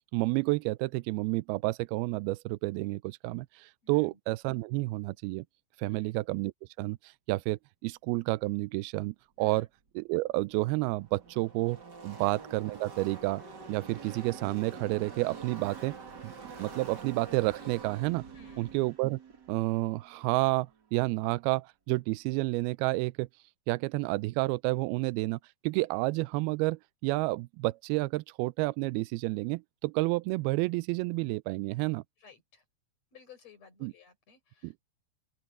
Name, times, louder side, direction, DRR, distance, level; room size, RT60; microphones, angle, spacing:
voice 1, 0.1-3.5 3.9-5.4 5.8-6.5 6.8-7.0 7.3-9.7 10.0-11.8 12.0-13.4 13.7-16.0 16.2-16.3 16.6-18.2 18.6-19.2 19.5-23.3 23.7-25.4 25.6-32.0 33.8-33.9 34.6-34.7, right 22 dB, 85° right, 2.2 m, -30 dB
voice 2, 3.8-4.2 5.9-6.2 9.4-9.7 12.0-12.3 18.3-18.8 32.2-32.6 33.1-34.8, left 5 dB, 35° left, 6.9 m, -57 dB
Car passing by / Race car auto racing, 10.3-20.9, right 5 dB, 35° right, 2.1 m, -46 dB
open air
omnidirectional pair, 4.9 m